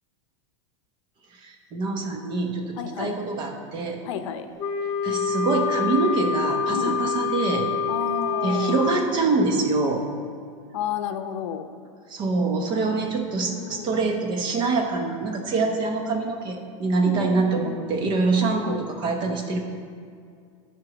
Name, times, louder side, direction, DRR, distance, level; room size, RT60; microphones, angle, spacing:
voice 1, 1.4-4.0 5.0-7.7 8.4-10.0 12.1-19.6, right 3 dB, 30° right, 4 dB, 0.9 m, -25 dB
voice 2, 2.8-3.1 4.0-4.5 6.7-7.0 7.9-8.8 10.7-11.7 13.5-13.9 17.1-17.7 18.4-18.9, left 8 dB, 65° left, 9 dB, 0.7 m, -32 dB
Wind instrument woodwind instrument, 4.6-9.1, left 4 dB, 20° left, 0.6 m, -26 dB
12.0 x 4.6 x 6.2 m, 2.3 s
supercardioid pair, 165°, 17 cm